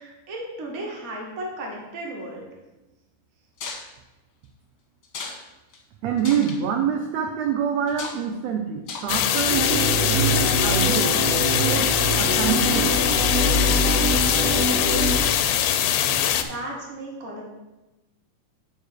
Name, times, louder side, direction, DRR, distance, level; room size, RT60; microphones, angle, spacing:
voice 1, 0.0-2.5 16.3-17.5, right 1 dB, 45° right, -1 dB, 0.9 m, -35 dB
sound 1, 3.6-3.9 5.0-5.4 5.7-5.8 6.2-6.6 7.9-8.2 8.9-9.1 9.4-9.7, left 4 dB, 60° left, 1.1 m, -36 dB
voice 2, 6.0-11.1 11.6-11.9 12.2-12.9, right 7 dB, 90° right, 3 dB, 1.5 m, -26 dB
sound 2, 9.1-16.4, left 10 dB, 85° left, 2.2 m, -22 dB
sound 3, 9.5-15.2, right 1 dB, 65° right, 1.8 m, -24 dB
9.1 x 3.5 x 6.4 m, 1.1 s
omnidirectional pair, 3.8 m